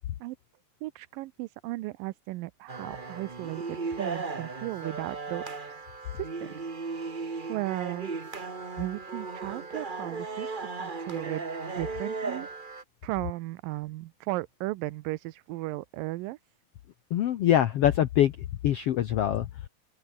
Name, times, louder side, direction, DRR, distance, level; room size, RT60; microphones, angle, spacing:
voice 1, 0.8-5.5 6.2-6.7 7.5-8.1 8.8-10.5 10.8-11.5 11.7-12.5 13.0-16.4, right 18 dB, 85° right, 2.5 m, -35 dB
sound 1, 2.7-12.8, right 4 dB, 70° right, 0.4 m, -36 dB
voice 2, 17.1-18.3 18.6-19.5, left 11 dB, 70° left, 1.4 m, -23 dB
open air
omnidirectional pair, 3.9 m